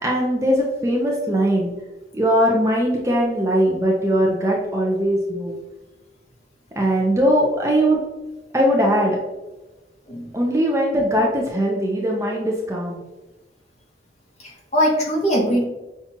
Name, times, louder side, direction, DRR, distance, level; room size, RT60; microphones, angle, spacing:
voice 1, 0.0-1.7 2.1-5.6 6.8-8.0 8.5-9.2 10.3-13.0, equal, 15° right, -2 dB, 0.5 m, -20 dB
voice 2, 14.4-15.6, equal, 40° left, -3 dB, 1.0 m, -21 dB
5.8 x 2.4 x 2.7 m, 1.1 s
head